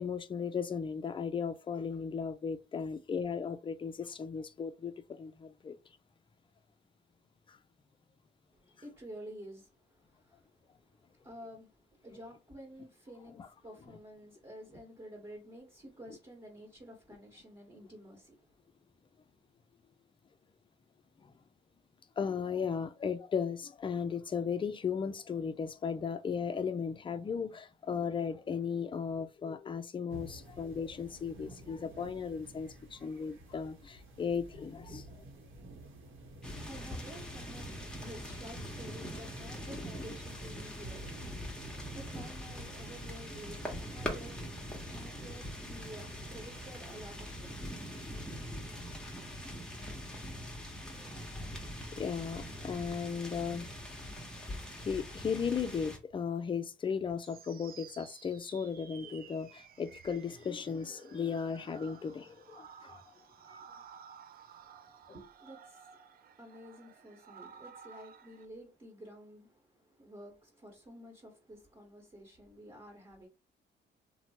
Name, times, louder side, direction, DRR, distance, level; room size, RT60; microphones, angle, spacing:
voice 1, 0.0-5.8 7.5-7.6 13.4-13.5 21.2-21.3 22.2-35.1 51.0-51.5 51.9-53.8 54.8-63.1 63.5-63.6, left 6 dB, 25° left, 0.4 m, -36 dB
voice 2, 8.5-18.6 36.0-47.8 64.8-73.3, equal, 25° right, 1.2 m, -51 dB
sound 1, 30.1-48.4, right 1 dB, 80° right, 1.0 m, -52 dB
sound 2, 36.4-56.0, equal, 5° left, 0.9 m, -43 dB
sound 3, 57.2-68.5, right 7 dB, 50° right, 0.4 m, -54 dB
2.9 x 2.1 x 2.8 m
cardioid pair, 90°, 20 cm